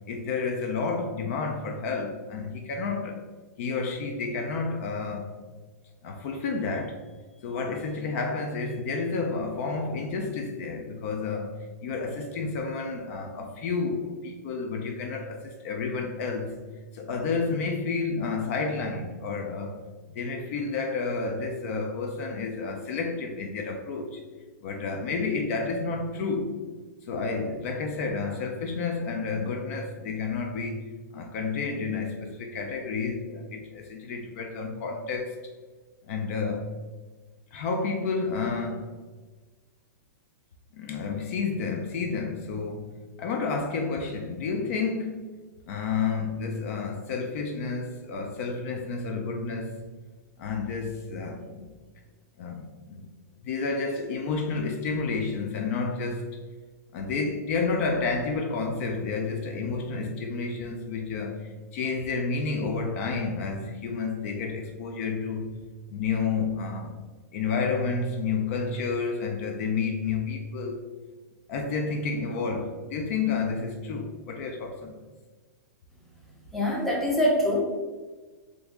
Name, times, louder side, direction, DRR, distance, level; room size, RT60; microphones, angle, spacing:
voice 1, 0.1-3.2 3.6-5.3 6.0-7.0 7.4-11.5 11.8-16.6 16.9-19.8 20.1-24.2 24.6-26.6 27.0-35.4 36.1-36.7 37.5-38.9 40.7-45.3 45.7-49.8 50.4-51.8 52.4-53.1 53.4-56.3 56.9-65.5 65.9-67.0 67.3-70.8 71.5-75.0, left 4 dB, 50° left, 3 dB, 0.4 m, -30 dB
voice 2, 76.5-77.6, left 1 dB, ahead, -4 dB, 0.6 m, -24 dB
2.8 x 2.6 x 3.4 m, 1.3 s
supercardioid pair, 150°, 9 cm